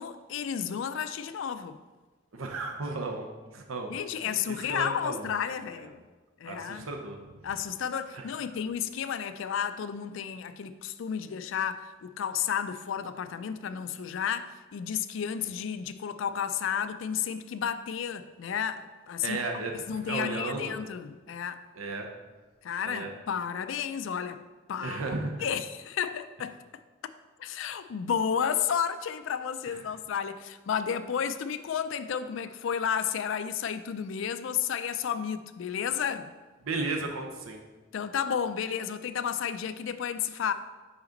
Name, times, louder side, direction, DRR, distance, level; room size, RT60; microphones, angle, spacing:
voice 1, 0.0-1.8 3.9-6.0 6.4-6.9 7.4-19.4 19.7-21.6 22.6-24.4 24.7-25.0 25.4-26.8 27.4-36.3 37.9-40.5, left 8 dB, 65° left, 0.3 m, -32 dB
voice 2, 2.3-3.3 3.5-3.9 4.2-4.4 4.7-5.3 6.5-7.2 8.1-8.3 19.2-19.7 20.1-20.8 21.8-22.1 22.9-23.1 24.8-25.5 36.6-37.6, right 3 dB, 85° right, 0.7 m, -34 dB
5.9 x 5.0 x 3.8 m
head